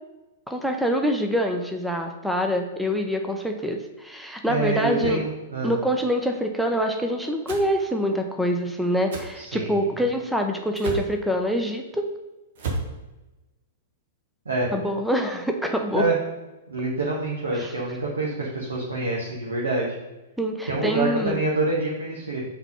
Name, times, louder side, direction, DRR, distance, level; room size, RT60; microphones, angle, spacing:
voice 1, 0.5-5.2 5.6-12.1 14.7-16.1 17.6-17.7 20.4-21.4, equal, ahead, 3 dB, 0.6 m, -25 dB
voice 2, 4.5-5.7 9.4-9.7 14.4-14.7 15.9-16.2 16.7-20.0 20.7-22.4, right 2 dB, 70° right, -4 dB, 1.2 m, -26 dB
sound 1, 7.5-7.7 9.1-9.3 10.8-11.1 12.6-12.9, right 3 dB, 55° right, 1.3 m, -30 dB
5.9 x 3.5 x 5.5 m, 1.1 s
figure-of-eight pair, 105°, 0 cm